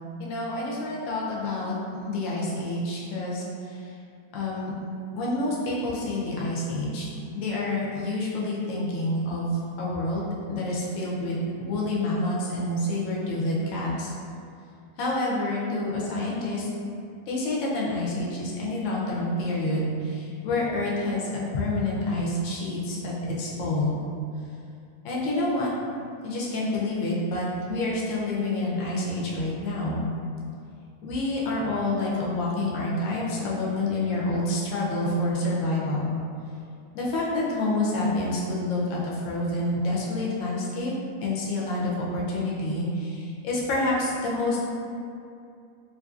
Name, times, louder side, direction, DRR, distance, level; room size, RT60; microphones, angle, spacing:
voice 1, 0.2-1.8 2.1-3.8 4.3-4.8 5.1-7.1 7.3-14.1 15.0-16.7 17.3-24.0 25.0-25.7 26.2-30.0 31.0-36.2 36.9-40.9 41.2-44.6, left 2 dB, 65° left, -5 dB, 0.8 m, -28 dB
2.5 x 2.5 x 2.3 m, 2.4 s
omnidirectional pair, 1.6 m